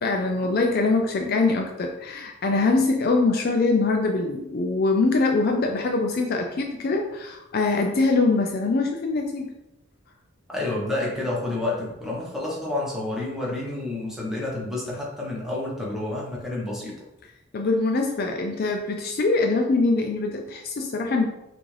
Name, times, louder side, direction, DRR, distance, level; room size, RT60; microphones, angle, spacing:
voice 1, 0.0-9.5 17.5-21.3, left 3 dB, 45° left, 3 dB, 0.4 m, -23 dB
voice 2, 10.5-17.0, left 2 dB, ahead, -5 dB, 1.1 m, -29 dB
6.0 x 2.5 x 3.3 m, 0.90 s
head